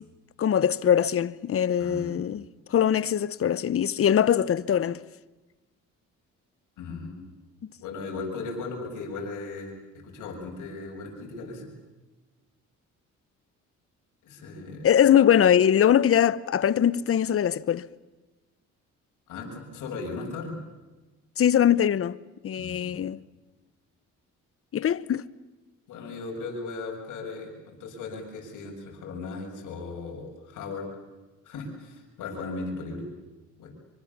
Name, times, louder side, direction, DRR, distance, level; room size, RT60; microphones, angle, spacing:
voice 1, 0.4-5.0 14.8-17.9 21.4-22.2 22.4-23.2 24.7-25.2, left 9 dB, 50° left, 0.9 m, -22 dB
voice 2, 1.8-2.1 6.8-7.3 7.8-9.7 10.0-11.7 14.2-14.9 19.3-20.6 22.5-23.0 25.9-30.9 31.5-33.1 33.6-33.7, left 3 dB, 85° left, 7.3 m, -37 dB
25.5 x 25.0 x 7.3 m
cardioid pair, 90°, 30 cm